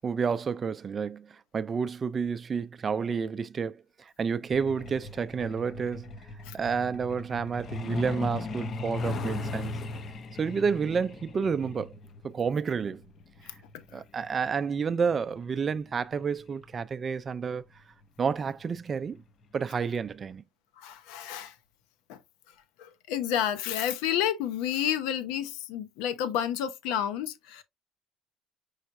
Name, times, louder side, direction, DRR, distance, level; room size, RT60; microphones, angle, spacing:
voice 1, 0.0-3.8 4.2-6.1 6.5-9.7 10.4-11.9 12.2-13.0 13.9-17.6 18.2-19.2 19.5-20.4, right 6 dB, 35° right, 0.4 m, -30 dB
Truck, 4.5-16.8 18.0-18.2 18.6-18.8 19.2-19.4 19.8-19.9 20.3-20.4, left 2 dB, 45° left, 0.7 m, -38 dB
voice 2, 20.8-21.6 22.1-22.2 22.8-27.6, left 10 dB, 85° left, 0.8 m, -30 dB
5.6 x 3.2 x 2.6 m
cardioid pair, 100°, 0 cm